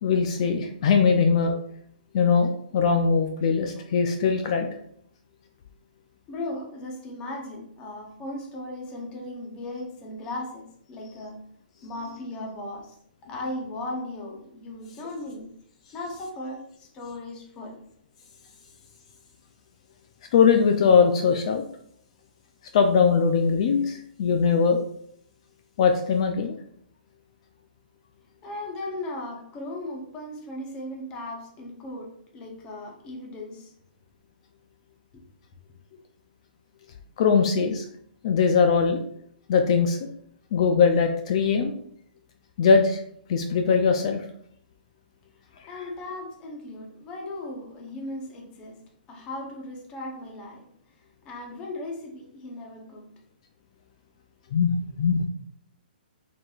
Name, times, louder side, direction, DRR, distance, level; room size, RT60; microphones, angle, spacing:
voice 1, 0.0-1.6 2.1-4.7 20.3-21.6 22.7-24.8 25.8-26.6 37.2-37.8 38.2-39.0 39.5-40.0 40.5-41.7 42.6-43.0 43.3-44.2 54.5-55.3, left 5 dB, 40° left, 5 dB, 0.4 m, -21 dB
voice 2, 6.3-11.4 11.8-13.0 13.2-15.5 15.9-17.8 28.4-33.7 45.7-48.8 49.1-50.7 51.2-53.1, left 1 dB, 15° left, 1 dB, 0.8 m, -37 dB
4.7 x 3.9 x 2.4 m, 0.67 s
hypercardioid pair, 165°, 5 cm